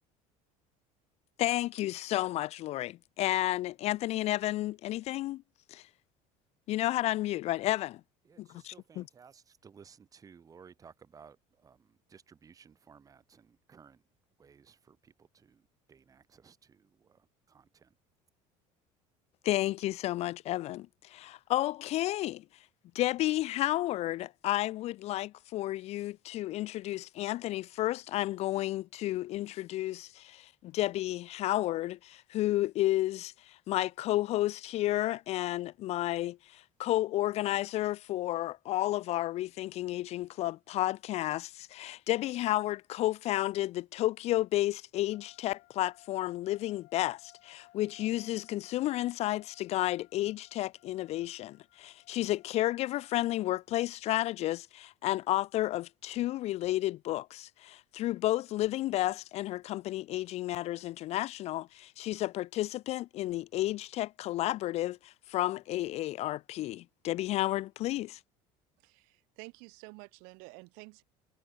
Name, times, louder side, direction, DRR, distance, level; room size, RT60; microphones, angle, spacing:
voice 1, 1.4-5.4 5.7-5.9 6.7-8.0 8.4-9.0 19.4-22.4 22.9-68.2, left 15 dB, 45° left, 0.4 m, -32 dB
voice 2, 8.2-14.0 14.4-17.9, right 6 dB, 25° right, 1.7 m, -58 dB
sound 1, 45.1-53.5, left 22 dB, 70° left, 7.0 m, -63 dB
voice 3, 68.8-71.0, right 33 dB, 80° right, 3.6 m, -50 dB
cardioid pair, 145°, 15 cm